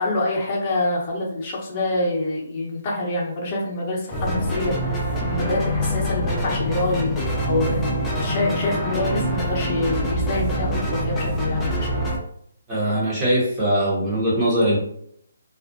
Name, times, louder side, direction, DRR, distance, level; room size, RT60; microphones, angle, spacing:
voice 1, 0.0-4.9 5.3-12.0, left 2 dB, 30° left, -2 dB, 0.8 m, -26 dB
sound 1, 4.1-12.2, equal, 10° left, 0.5 m, -25 dB
voice 2, 12.7-14.8, right 1 dB, 15° right, -7 dB, 1.0 m, -21 dB
2.4 x 2.1 x 2.6 m, 0.68 s
figure-of-eight pair, 150°, 0 cm